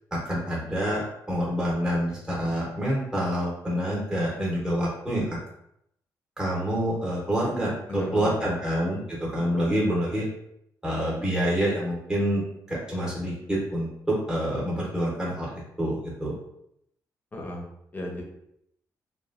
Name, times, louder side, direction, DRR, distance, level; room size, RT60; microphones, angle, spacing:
voice 1, 0.1-5.4 6.4-10.3 10.8-15.5 15.8-16.3, equal, 10° right, -5 dB, 0.8 m, -27 dB
voice 2, 7.9-8.8 17.3-17.6 17.9-18.2, left 1 dB, 25° left, 0 dB, 0.6 m, -35 dB
3.0 x 2.2 x 2.4 m, 0.77 s
cardioid pair, 120°, 7 cm